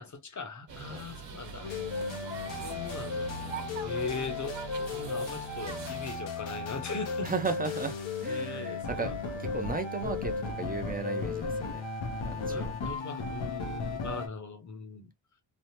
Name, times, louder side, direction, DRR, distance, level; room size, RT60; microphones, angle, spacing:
voice 1, 0.0-1.7 2.5-3.3 3.8-4.6 4.9-7.3 8.3-9.1 12.5-15.1, left 5 dB, 40° left, 0.9 m, -39 dB
sound 1, 0.7-6.1, right 4 dB, 70° right, 1.1 m, -43 dB
sound 2, 1.6-14.3, left 3 dB, 80° left, 0.9 m, -35 dB
voice 2, 7.2-9.1 9.4-11.9 12.2-12.7 14.1-14.2, right 4 dB, 20° right, 0.6 m, -35 dB
3.3 x 2.0 x 2.9 m
wide cardioid pair, 90°, 45 cm